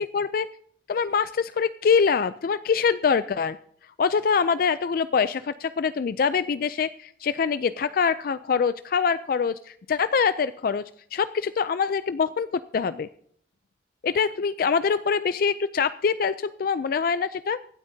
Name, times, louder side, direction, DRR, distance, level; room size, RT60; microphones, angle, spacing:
voice 1, 0.1-0.5 0.9-3.6 4.0-10.8 11.1-13.1 14.0-17.6, left 6 dB, 50° left, 14 dB, 0.4 m, -24 dB
24.5 x 8.7 x 2.7 m, 0.65 s
head